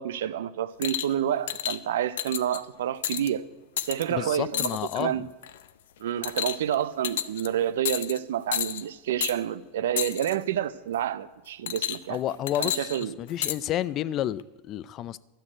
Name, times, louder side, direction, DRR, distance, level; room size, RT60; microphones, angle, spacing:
voice 1, 0.0-3.5 3.8-5.2 6.0-12.2 12.6-13.2, right 10 dB, 85° right, 0.6 m, -29 dB
sound 1, 0.8-1.1 1.5-1.8 2.2-2.6 3.0-3.3 3.8-4.0 4.5-5.0 5.4-5.7 6.2-6.7 7.0-7.5 7.8-8.2 8.5-8.8 9.2-9.4 10.0-10.3 11.7-12.2 12.5-13.6 14.4-14.5, left 11 dB, 85° left, 0.6 m, -30 dB
voice 2, 4.1-5.2 12.1-15.2, left 12 dB, 40° left, 0.5 m, -31 dB
12.5 x 6.4 x 8.7 m
supercardioid pair, 130°, 0 cm